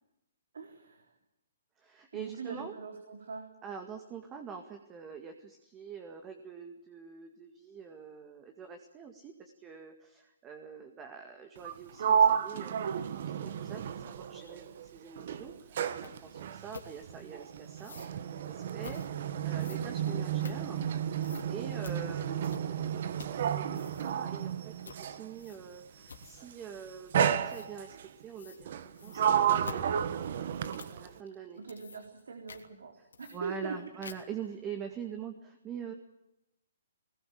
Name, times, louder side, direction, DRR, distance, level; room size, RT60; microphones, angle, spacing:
voice 1, 0.5-1.1 2.1-3.5 30.2-30.8 31.6-33.8, right 4 dB, 80° right, 4 dB, 3.7 m, -42 dB
voice 2, 1.8-2.7 3.6-19.0 19.4-20.8 21.5-27.9 28.2-28.7 29.0-30.2 30.9-31.6 33.3-35.9, right 7 dB, 20° right, 6 dB, 2.0 m, -45 dB
Sliding door, 11.6-14.9 15.2-25.3 26.2-26.5 27.1-28.1 28.6-31.2, right 8 dB, 55° right, 1.6 m, -32 dB
sound 1, 16.0-16.1 16.7-16.9 17.8-18.1 18.8-19.1 19.6-20.9 21.2-21.5 21.8-22.0 22.4-22.8 23.1-23.4 23.7-24.2 24.8-25.0 25.4-25.7 26.1-26.5 27.5-27.7 28.3-28.6 28.9-31.0 31.5-32.2 32.5-32.6 33.1-33.7 34.0-34.4, left 5 dB, 85° left, 3.2 m, -48 dB
20.5 x 20.0 x 8.8 m, 0.87 s
hypercardioid pair, 150°, 0 cm